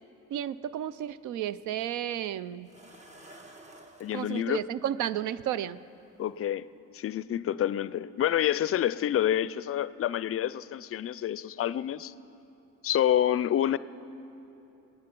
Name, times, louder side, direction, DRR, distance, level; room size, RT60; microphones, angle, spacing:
voice 1, 0.3-2.7 4.1-5.8, right 11 dB, 80° right, 17 dB, 0.5 m, -32 dB
sound 1, 1.5-1.6 2.7-4.5 5.7-5.8 6.3-6.5, right 1 dB, 25° right, 1.4 m, -51 dB
voice 2, 4.0-4.6 6.2-6.7 6.9-12.1 12.8-13.8, left 11 dB, 50° left, 17 dB, 0.4 m, -28 dB
22.5 x 9.1 x 5.3 m, 2.9 s
cardioid pair, 90°, 30 cm